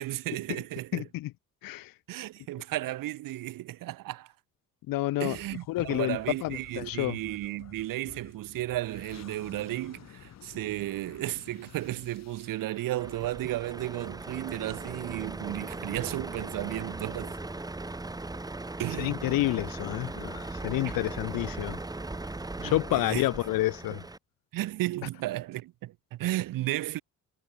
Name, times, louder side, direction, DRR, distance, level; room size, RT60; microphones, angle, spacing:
voice 1, 0.0-1.1 2.1-4.3 5.2-17.4 18.8-19.2 20.8-20.9 22.6-23.3 23.9-24.0 24.5-27.0, right 16 dB, 75° right, 1.0 m, -34 dB
voice 2, 0.9-1.3 1.6-1.9 4.9-5.4 5.7-7.2 19.0-21.8 22.6-24.0, left 17 dB, 90° left, 1.0 m, -29 dB
sound 1, 5.3-14.6, left 10 dB, 50° left, 2.2 m, -52 dB
Truck, 13.0-24.2, right 2 dB, 10° right, 2.2 m, -39 dB
cardioid pair, 135°, 33 cm